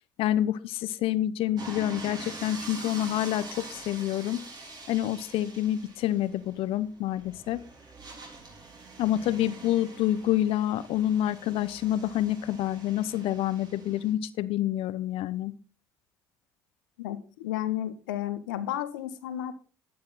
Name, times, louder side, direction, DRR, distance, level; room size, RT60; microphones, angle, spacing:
voice 1, 0.2-4.5 4.9-7.6 9.0-15.5, left 12 dB, 65° left, 16 dB, 0.8 m, -28 dB
sound 1, 1.6-14.1, right 3 dB, 40° right, 4.0 m, -45 dB
voice 2, 17.0-19.5, left 12 dB, 85° left, 11 dB, 1.1 m, -32 dB
11.5 x 8.7 x 4.1 m, 0.37 s
hypercardioid pair, 65°, 10 cm